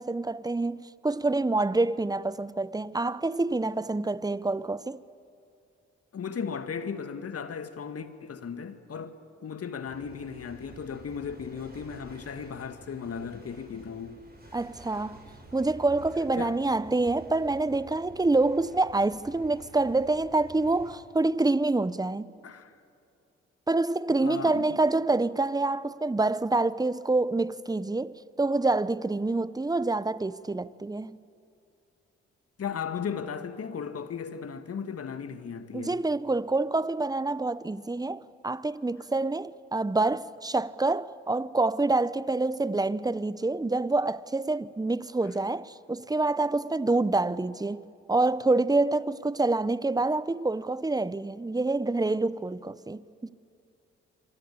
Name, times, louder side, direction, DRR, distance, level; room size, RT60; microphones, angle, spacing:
voice 1, 0.0-5.0 14.5-15.2 15.5-22.3 23.7-31.2 35.7-53.3, right 2 dB, 10° right, 0.9 m, -27 dB
voice 2, 6.1-9.2 9.4-14.2 16.4-16.6 22.4-22.7 24.2-24.8 32.6-36.0, left 6 dB, 50° left, 2.1 m, -36 dB
sound 1, 9.9-21.0, right 2 dB, 30° right, 8.0 m, -50 dB
26.5 x 23.5 x 8.6 m
hypercardioid pair, 50°, 30 cm